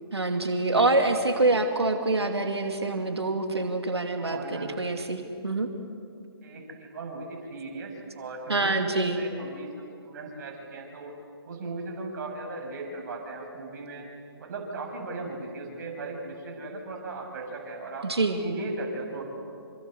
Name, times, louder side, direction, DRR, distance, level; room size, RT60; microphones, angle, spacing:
voice 1, 0.1-5.7 8.5-9.3 18.0-18.4, right 2 dB, 85° right, 5 dB, 2.6 m, -26 dB
voice 2, 0.7-1.1 4.2-4.8 6.4-8.8 9.2-11.1 11.4-14.1 14.4-18.1 18.4-19.2, right 3 dB, 45° right, 1 dB, 7.5 m, -37 dB
28.0 x 26.5 x 8.0 m, 2.4 s
figure-of-eight pair, 140°, 13 cm